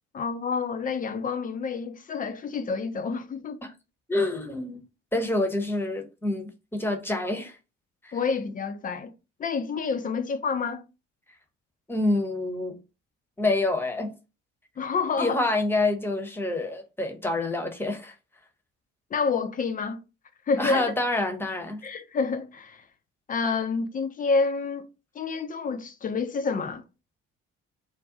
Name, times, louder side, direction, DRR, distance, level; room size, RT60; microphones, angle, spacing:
voice 1, 0.1-3.6 8.1-9.1 9.4-10.8 14.8-15.4 19.1-20.0 20.5-20.9 21.8-22.9 23.3-24.9 25.2-26.8, left 4 dB, 25° left, 0.4 m, -28 dB
voice 2, 4.1-4.8 5.1-7.6 8.0-8.2 11.9-12.8 13.4-14.1 15.2-18.2 20.6-21.8, left 2 dB, 5° left, 0.8 m, -27 dB
2.5 x 2.2 x 3.7 m
figure-of-eight pair, 50°, 35 cm